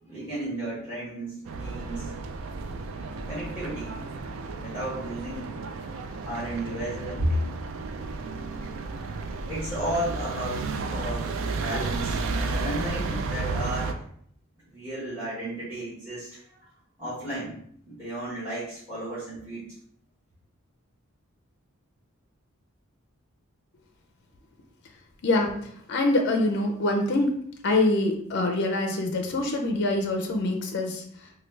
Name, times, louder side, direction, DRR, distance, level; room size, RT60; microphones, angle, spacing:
voice 1, 0.0-2.1 3.3-4.2 4.6-5.6 6.2-7.5 9.5-14.0 14.7-16.4 17.0-17.6 17.8-19.7, right 1 dB, 10° right, -12 dB, 1.2 m, -33 dB
sound 1, 1.4-13.9, right 3 dB, 65° right, 0.3 m, -33 dB
voice 2, 25.2-27.4 27.6-31.3, left 2 dB, 55° left, 3 dB, 0.4 m, -25 dB
3.0 x 2.3 x 3.2 m, 0.65 s
head